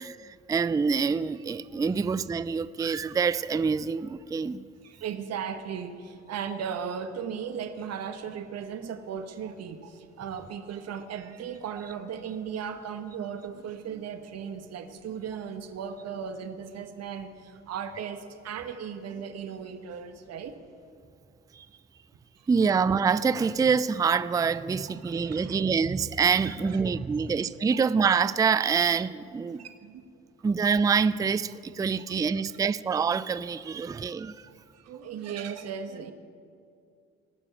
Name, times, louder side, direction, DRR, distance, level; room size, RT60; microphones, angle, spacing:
voice 1, 0.0-4.7 21.6-21.7 22.5-29.6 30.4-34.4, right 5 dB, 10° right, 17 dB, 0.4 m, -26 dB
voice 2, 4.8-20.6 22.4-22.7 24.9-25.6 26.4-27.3 29.4-30.0 32.3-32.4 34.7-36.1, right 7 dB, 55° right, 8 dB, 1.2 m, -37 dB
18.5 x 6.9 x 9.1 m, 2.4 s
hypercardioid pair, 65°, 31 cm